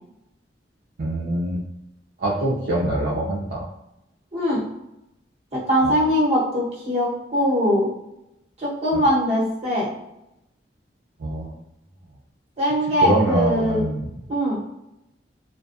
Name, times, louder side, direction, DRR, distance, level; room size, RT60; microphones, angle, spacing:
voice 1, 1.0-1.6 2.2-3.7 5.8-6.0 8.9-9.0 11.2-11.6 13.0-14.1, right 1 dB, 55° right, -7 dB, 0.4 m, -24 dB
voice 2, 4.3-4.6 5.5-7.9 8.6-9.9 12.6-13.8 14.3-14.6, equal, 35° right, -7 dB, 1.1 m, -21 dB
2.3 x 2.3 x 2.5 m, 0.88 s
head